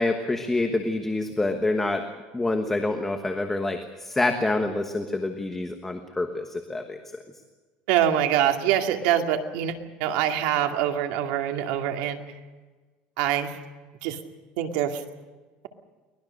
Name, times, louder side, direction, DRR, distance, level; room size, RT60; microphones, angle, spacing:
voice 1, 0.0-2.0 2.3-7.0, left 2 dB, 10° left, 5 dB, 1.2 m, -27 dB
voice 2, 7.9-12.2 13.2-13.5 14.0-14.2 14.6-15.0, right 10 dB, 75° right, 4 dB, 2.3 m, -24 dB
23.5 x 19.0 x 6.5 m, 1.3 s
cardioid pair, 160°, 3 cm